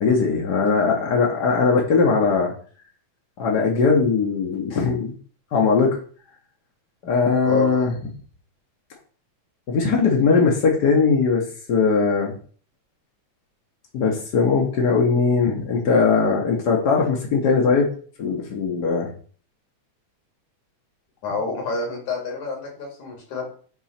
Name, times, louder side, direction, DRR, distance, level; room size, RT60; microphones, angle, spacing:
voice 1, 0.0-2.5 3.4-5.1 5.5-6.0 7.0-7.9 9.7-12.3 13.9-17.9 18.2-19.1, left 4 dB, 60° left, -1 dB, 1.0 m, -20 dB
voice 2, 21.2-23.5, left 4 dB, 85° left, 0 dB, 3.7 m, -27 dB
8.9 x 3.1 x 4.3 m, 0.43 s
omnidirectional pair, 3.4 m